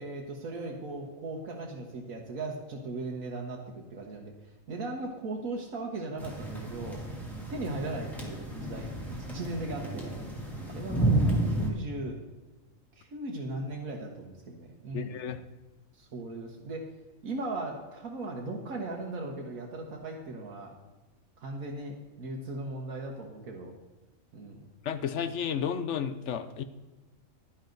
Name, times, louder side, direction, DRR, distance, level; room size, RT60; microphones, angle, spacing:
voice 1, 0.0-7.0 7.5-10.1 10.6-12.2 13.0-15.2 15.9-16.8 17.2-20.7 21.4-23.7 24.3-24.6, right 2 dB, 85° right, -1 dB, 1.6 m, -38 dB
sound 1, 6.2-11.7, right 1 dB, ahead, 2.1 m, -31 dB
voice 2, 14.9-15.4 24.8-26.6, left 8 dB, 65° left, 12 dB, 0.9 m, -32 dB
11.0 x 10.0 x 3.9 m, 1.2 s
omnidirectional pair, 1.4 m